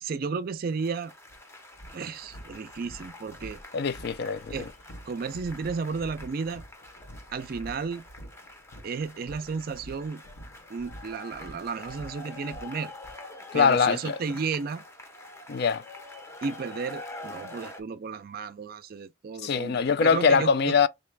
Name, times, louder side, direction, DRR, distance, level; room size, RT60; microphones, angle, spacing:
voice 1, 0.0-1.1 1.9-3.6 4.5-4.7 5.1-6.6 7.3-8.0 8.8-10.2 10.7-12.9 13.5-14.8 16.4-20.8, right 5 dB, 50° right, 0.4 m, -33 dB
sound 1, 0.7-17.8, left 2 dB, 15° left, 0.6 m, -46 dB
sound 2, 1.3-1.4 1.7-13.1, right 1 dB, 85° left, 1.0 m, -47 dB
voice 2, 3.7-4.5 13.5-14.2 15.5-15.8 19.4-20.9, left 6 dB, 55° left, 0.4 m, -23 dB
3.2 x 2.8 x 4.5 m
head